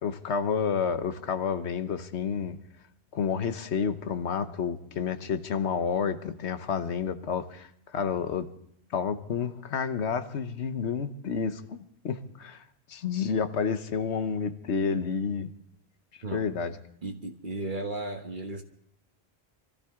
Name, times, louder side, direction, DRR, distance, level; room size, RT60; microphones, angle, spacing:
voice 1, 0.0-2.6 3.1-8.5 8.9-11.8 12.0-12.6 12.9-15.5 16.3-16.8, left 6 dB, 85° left, 10 dB, 1.2 m, -30 dB
voice 2, 17.0-18.6, right 2 dB, 50° right, 4 dB, 1.3 m, -35 dB
24.0 x 14.0 x 3.6 m, 0.70 s
omnidirectional pair, 1.1 m